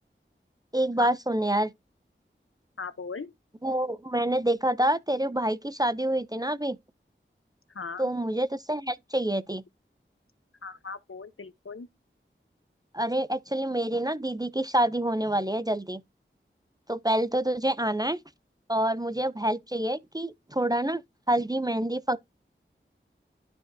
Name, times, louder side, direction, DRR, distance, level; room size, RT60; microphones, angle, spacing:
voice 1, 0.7-1.7 3.6-6.8 8.0-9.6 12.9-16.0 16.9-18.2 18.7-21.0 21.3-22.2, right 1 dB, 20° right, 0.5 m, -27 dB
voice 2, 2.8-3.3 7.7-8.1 10.6-11.9, left 4 dB, 85° left, 0.8 m, -38 dB
12.0 x 5.0 x 2.6 m
wide cardioid pair, 45°, 21 cm